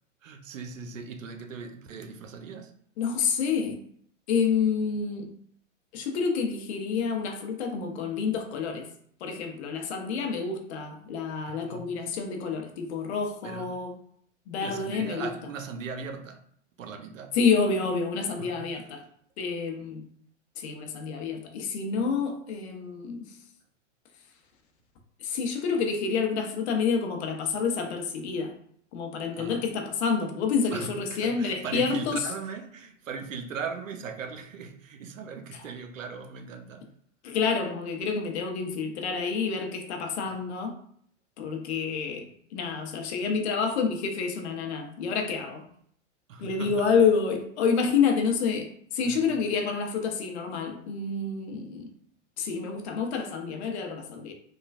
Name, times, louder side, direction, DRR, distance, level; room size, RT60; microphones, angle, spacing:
voice 1, 0.2-2.7 11.5-12.0 13.4-13.7 14.6-16.5 16.8-17.4 18.4-18.9 27.5-27.6 29.3-29.7 30.7-36.9 40.2-40.4 46.3-46.9 49.0-49.4, right 5 dB, 90° right, 0.6 m, -39 dB
voice 2, 3.0-3.8 4.3-5.3 5.9-8.9 9.2-13.9 14.5-15.3 17.3-19.0 19.4-20.0 20.6-23.2 25.2-28.5 28.9-32.2 37.2-40.7 41.4-42.3 42.5-45.7 46.4-51.9 52.4-54.3, left 5 dB, 60° left, 0.7 m, -28 dB
3.2 x 2.3 x 2.3 m
hypercardioid pair, 115°, 38 cm